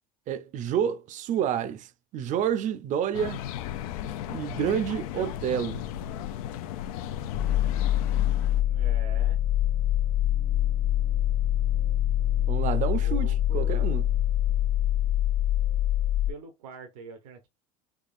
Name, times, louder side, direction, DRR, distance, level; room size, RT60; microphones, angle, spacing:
voice 1, 0.3-3.4 4.3-5.9 12.5-14.1, right 9 dB, 45° right, 0.6 m, -29 dB
sound 1, 3.1-8.6, left 11 dB, 85° left, 0.5 m, -35 dB
sound 2, 7.3-16.3, left 12 dB, 40° left, 0.8 m, -25 dB
voice 2, 8.6-9.4 12.6-13.9 16.3-17.5, right 4 dB, 85° right, 0.9 m, -44 dB
3.6 x 3.3 x 2.5 m
supercardioid pair, 110°, 18 cm